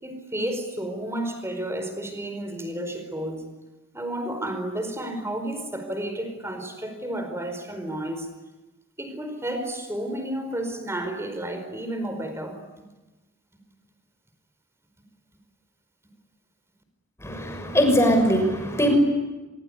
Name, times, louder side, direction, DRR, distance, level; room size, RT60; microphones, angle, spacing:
voice 1, 0.0-3.5 3.9-8.3 9.0-12.6, right 1 dB, 15° right, 8 dB, 4.7 m, -31 dB
voice 2, 17.2-19.0, equal, 15° left, 4 dB, 6.3 m, -21 dB
25.5 x 23.5 x 9.7 m, 1.1 s
head